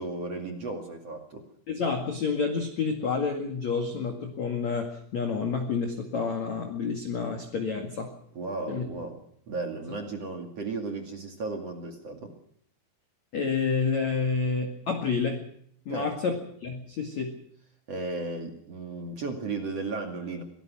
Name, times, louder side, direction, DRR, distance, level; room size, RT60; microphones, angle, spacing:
voice 1, 0.0-1.4 8.3-12.3 15.9-16.2 17.9-20.4, right 3 dB, 45° right, 4 dB, 2.4 m, -35 dB
voice 2, 1.7-8.1 8.7-8.8 13.3-15.4 15.9-16.4 16.6-17.3, left 5 dB, 45° left, 4 dB, 2.5 m, -29 dB
25.0 x 19.0 x 6.1 m, 0.66 s
omnidirectional pair, 5.9 m